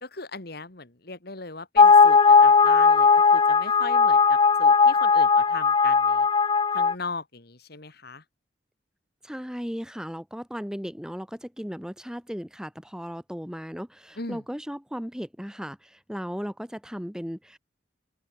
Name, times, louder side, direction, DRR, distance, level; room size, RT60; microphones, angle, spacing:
voice 1, 0.0-6.3 6.7-8.2 14.2-14.4, left 3 dB, 55° left, 2.4 m, -38 dB
sound 1, 1.8-6.9, left 5 dB, 25° left, 0.4 m, -17 dB
voice 2, 9.2-17.6, equal, 5° right, 5.3 m, -36 dB
head